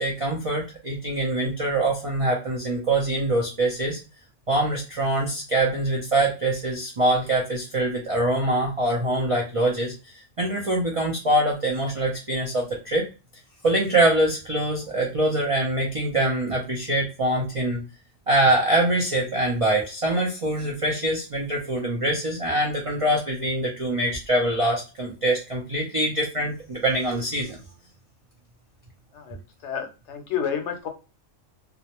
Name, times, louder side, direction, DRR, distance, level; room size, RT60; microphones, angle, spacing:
voice 1, 0.0-4.0 4.5-13.1 13.6-17.8 18.3-27.6, right 1 dB, 55° right, -1 dB, 0.3 m, -24 dB
voice 2, 29.1-30.9, left 8 dB, 70° left, 4 dB, 0.8 m, -30 dB
2.4 x 2.0 x 2.9 m, 0.31 s
omnidirectional pair, 1.3 m